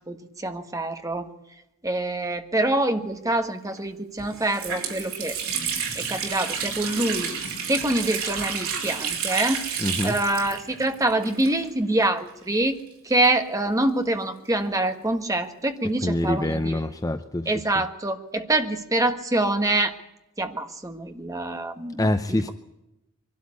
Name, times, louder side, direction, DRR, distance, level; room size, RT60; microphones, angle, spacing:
voice 1, 0.1-1.3 1.8-7.3 7.7-9.6 10.0-12.8 13.0-16.8 17.4-19.9 20.4-22.5, right 2 dB, 15° right, 7 dB, 1.4 m, -25 dB
Water tap faucet, 3.7-3.8 4.2-11.9 12.2-12.3 13.1-14.7, right 6 dB, 80° right, 5.2 m, -31 dB
voice 2, 9.8-10.1 16.0-17.5 22.0-22.5, left 1 dB, 15° left, 10 dB, 0.6 m, -25 dB
23.5 x 12.5 x 9.8 m, 0.91 s
head